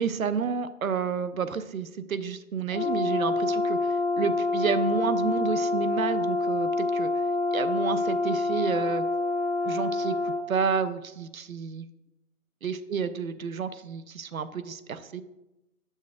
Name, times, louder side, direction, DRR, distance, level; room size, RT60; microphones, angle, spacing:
voice 1, 0.0-7.2 7.5-9.0 9.6-11.9 12.6-15.2, right 6 dB, 75° right, 12 dB, 0.5 m, -30 dB
Brass instrument, 2.7-10.4, left 3 dB, 50° left, 0.6 m, -27 dB
7.4 x 6.4 x 2.4 m, 0.94 s
figure-of-eight pair, 180°, 43 cm